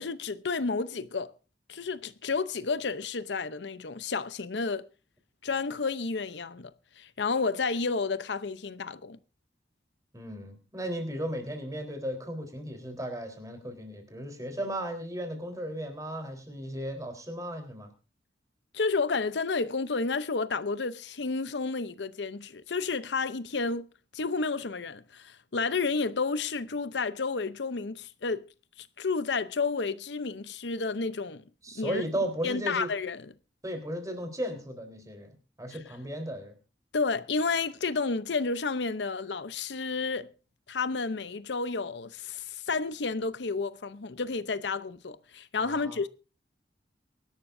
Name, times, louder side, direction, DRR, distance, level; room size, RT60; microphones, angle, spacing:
voice 1, 0.0-1.3 1.7-4.8 5.4-9.2 18.7-23.9 24.1-28.5 28.8-31.4 31.7-32.0 32.4-33.2 36.9-40.3 40.7-46.1, left 4 dB, 85° left, 0.8 m, -31 dB
voice 2, 10.1-17.9 31.6-32.9 33.6-36.5 45.6-46.0, equal, 20° right, 3.9 m, -35 dB
23.5 x 12.0 x 2.7 m
head